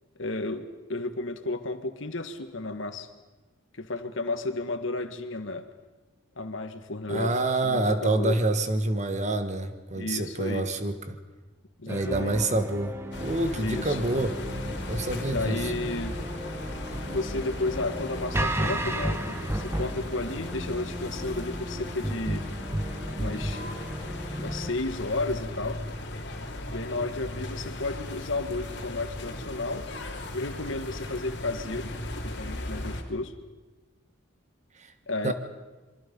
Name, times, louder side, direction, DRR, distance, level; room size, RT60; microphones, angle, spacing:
voice 1, 0.2-3.1 3.8-5.7 6.4-7.4 7.6-8.4 9.9-10.6 11.8-12.4 13.6-14.0 15.3-16.2 17.1-22.5 23.2-23.6 24.4-25.8 26.7-29.9 30.3-31.9 32.2-33.3 35.1-35.3, left 2 dB, 75° left, 8 dB, 1.7 m, -33 dB
voice 2, 7.1-11.2 11.9-14.4 14.8-15.7 35.2-35.3, right 2 dB, 35° right, 9 dB, 1.5 m, -27 dB
sound 1, 11.9-24.7, right 1 dB, 15° right, 1.1 m, -34 dB
sound 2, 13.1-33.0, left 1 dB, 60° left, 2.9 m, -37 dB
26.0 x 23.5 x 5.4 m, 1.2 s
head